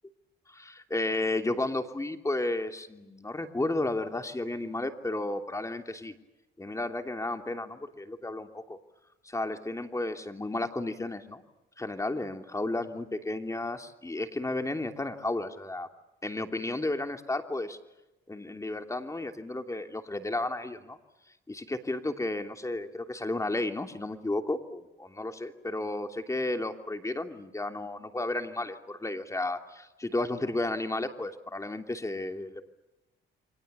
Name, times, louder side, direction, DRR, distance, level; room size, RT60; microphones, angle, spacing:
voice 1, 0.5-6.1 6.6-8.8 9.2-11.4 11.8-15.9 16.2-17.8 18.3-21.0 21.5-32.7, left 2 dB, 15° left, 5 dB, 3.0 m, -33 dB
29.5 x 24.5 x 7.0 m, 1.0 s
cardioid pair, 90°, 20 cm